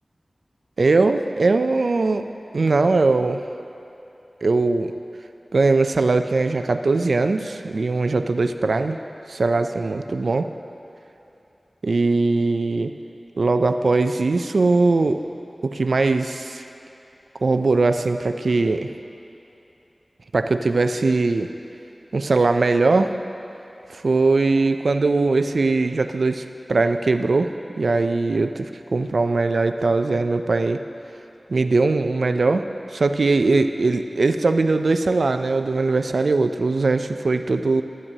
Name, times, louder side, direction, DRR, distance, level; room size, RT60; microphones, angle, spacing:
voice 1, 0.8-2.3 2.5-3.4 4.4-4.9 5.5-9.0 9.3-10.5 11.8-12.9 13.4-15.2 15.6-16.6 17.4-18.9 20.3-21.5 22.1-23.1 23.9-30.8 31.5-32.7 32.9-37.8, right 3 dB, 85° right, 8 dB, 0.3 m, -20 dB
12.0 x 8.7 x 2.7 m, 2.9 s
wide cardioid pair, 50°, 0 cm